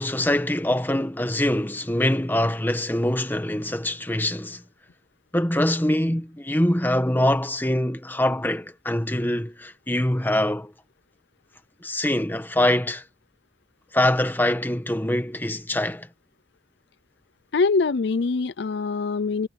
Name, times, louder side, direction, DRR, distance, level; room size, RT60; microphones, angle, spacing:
voice 1, 0.0-4.6 5.3-10.7 11.8-13.0 13.9-16.1, left 1 dB, 10° left, 1.5 m, -24 dB
voice 2, 17.5-19.5, left 4 dB, 65° left, 0.5 m, -23 dB
head